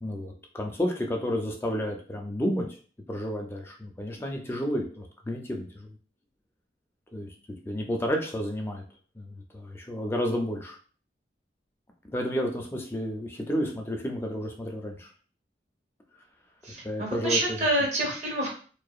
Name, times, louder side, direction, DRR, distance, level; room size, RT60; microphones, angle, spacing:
voice 1, 0.0-2.7 3.1-6.0 7.1-7.3 7.7-8.8 9.1-10.8 12.1-15.1 16.8-17.6, equal, 15° left, 2 dB, 0.3 m, -31 dB
voice 2, 16.6-18.6, right 1 dB, 40° right, -3 dB, 0.8 m, -27 dB
2.7 x 2.0 x 2.3 m, 0.41 s
head